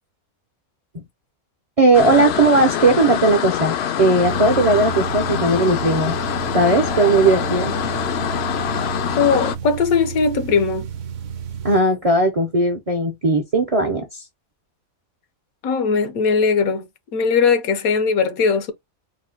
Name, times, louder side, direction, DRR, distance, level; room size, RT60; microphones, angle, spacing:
voice 1, 1.8-6.1 6.5-7.7 11.6-14.2, right 2 dB, 40° right, 0.5 m, -17 dB
sound 1, 1.9-9.6, left 9 dB, 65° left, 0.6 m, -25 dB
sound 2, 4.2-11.8, right 7 dB, 65° right, 0.9 m, -31 dB
voice 2, 9.2-10.9 15.6-18.7, left 5 dB, 80° left, 1.2 m, -19 dB
4.1 x 2.2 x 3.7 m
omnidirectional pair, 1.5 m